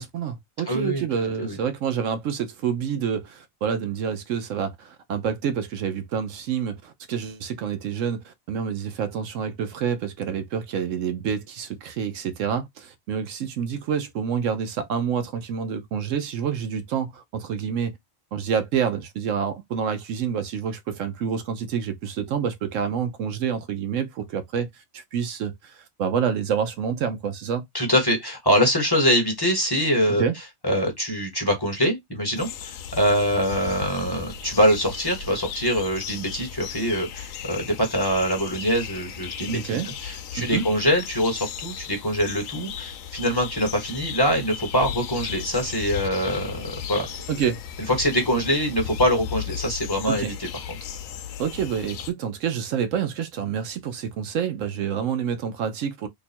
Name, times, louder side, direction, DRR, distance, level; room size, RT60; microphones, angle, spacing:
voice 1, 0.0-18.0 18.3-27.6 30.2-30.3 39.5-39.9 40.4-40.7 47.3-47.6 50.1-50.3 51.4-56.1, right 7 dB, 75° right, 0.9 m, -28 dB
voice 2, 0.7-1.0 1.4-1.6 27.7-30.2 30.6-47.1 48.0-50.3 50.7-50.8, equal, 20° left, 1.2 m, -24 dB
sound 1, 32.3-52.1, left 8 dB, 80° left, 1.0 m, -36 dB
2.9 x 2.3 x 4.2 m
omnidirectional pair, 1.4 m